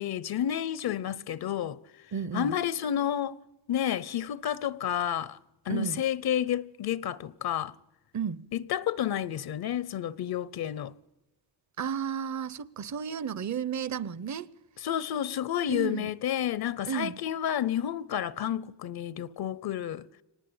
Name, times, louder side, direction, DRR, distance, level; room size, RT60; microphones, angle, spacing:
voice 1, 0.0-1.8 2.3-3.4 3.7-5.4 5.6-7.7 8.5-10.9 14.8-20.1, left 10 dB, 60° left, 0.8 m, -30 dB
voice 2, 2.1-2.5 5.7-6.0 8.1-8.4 11.8-14.5 15.7-16.1 16.9-17.2, right 7 dB, 40° right, 0.9 m, -33 dB
24.5 x 19.5 x 8.8 m
cardioid pair, 90°, 43 cm